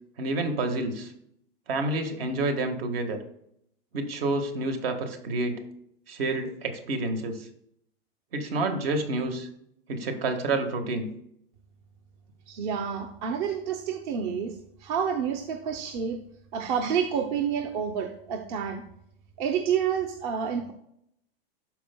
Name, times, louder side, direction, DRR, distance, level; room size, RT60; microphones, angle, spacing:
voice 1, 0.2-1.1 1.7-3.2 3.9-5.6 6.1-7.5 8.3-9.5 9.9-11.1, right 2 dB, 75° right, 5 dB, 1.6 m, -29 dB
voice 2, 12.5-14.5 14.8-16.2 16.5-18.8 19.4-20.7, right 7 dB, 50° right, 5 dB, 0.8 m, -29 dB
12.5 x 4.6 x 2.2 m, 0.73 s
supercardioid pair, 145°, 30 cm